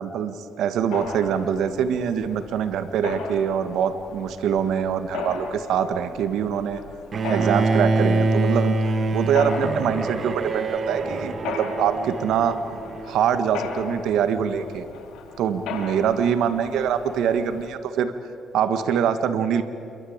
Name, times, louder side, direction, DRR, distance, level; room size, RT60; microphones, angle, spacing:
voice 1, 0.0-6.8 7.3-8.8 9.1-12.6 13.0-14.9 15.4-18.1 18.5-19.6, right 8 dB, 80° right, 10 dB, 1.5 m, -24 dB
Mechanisms, 0.9-17.7, left 5 dB, 85° left, 5.0 m, -37 dB
Bowed string instrument, 7.1-13.2, right 3 dB, 45° right, 2.3 m, -25 dB
28.0 x 23.5 x 8.8 m, 2.7 s
cardioid pair, 90°, 0 cm